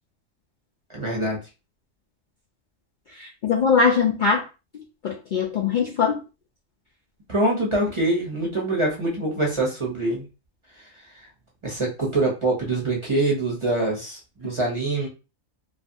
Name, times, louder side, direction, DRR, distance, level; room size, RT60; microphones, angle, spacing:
voice 1, 0.9-1.4 7.3-10.2 10.8-10.9 11.6-15.1, right 2 dB, 30° right, -2 dB, 0.6 m, -24 dB
voice 2, 3.2-4.4 5.0-6.2, left 5 dB, 90° left, 0 dB, 0.4 m, -21 dB
2.6 x 2.5 x 2.6 m, 0.30 s
omnidirectional pair, 1.4 m